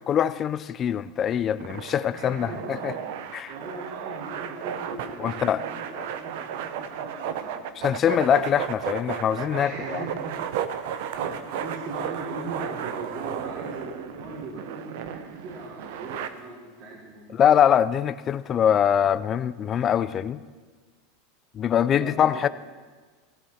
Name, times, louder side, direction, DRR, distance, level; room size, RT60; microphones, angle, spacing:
voice 1, 0.1-2.9 3.3-3.5 5.2-5.7 7.8-10.0 17.3-20.4 21.5-22.5, left 9 dB, 35° left, 15 dB, 0.5 m, -23 dB
sound 1, 1.6-16.3, right 9 dB, 70° right, 0.9 m, -34 dB
voice 2, 2.1-3.1 3.4-7.9 8.2-8.3 9.6-10.4 11.2-17.4 22.0-22.4, right 2 dB, 50° right, -6 dB, 5.2 m, -39 dB
17.5 x 14.5 x 4.4 m, 1.4 s
supercardioid pair, 125°, 0 cm